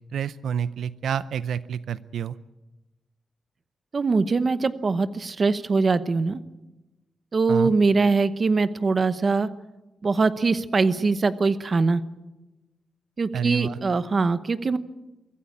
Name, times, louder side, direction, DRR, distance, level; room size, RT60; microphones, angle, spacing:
voice 1, 0.1-2.4 7.5-7.7 13.3-13.8, right 8 dB, 85° right, 15 dB, 0.6 m, -28 dB
voice 2, 3.9-6.4 7.3-9.5 10.0-12.0 13.2-14.8, right 4 dB, 35° right, 13 dB, 0.9 m, -22 dB
24.0 x 14.5 x 8.6 m, 1.1 s
wide cardioid pair, 155°, 0 cm